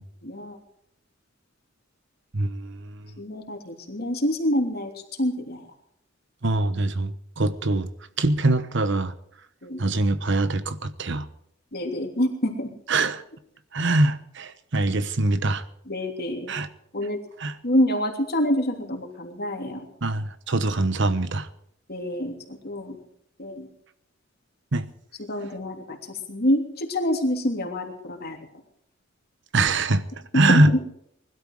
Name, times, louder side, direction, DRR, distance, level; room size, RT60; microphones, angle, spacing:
voice 1, 0.2-0.6 3.2-4.9 5.2-5.7 9.6-9.8 11.7-12.7 15.9-16.5 16.9-17.2 17.6-19.9 21.9-23.0 23.4-23.7 25.3-28.4 30.3-30.8, left 1 dB, 55° left, 2 dB, 3.1 m, -26 dB
voice 2, 2.3-3.1 6.4-7.9 8.2-9.1 9.8-11.3 12.9-13.2 13.7-15.6 16.5-16.7 17.4-17.6 20.0-21.5 24.7-24.8 29.5-30.8, right 2 dB, 65° right, 12 dB, 1.1 m, -23 dB
20.5 x 12.5 x 4.8 m, 0.71 s
head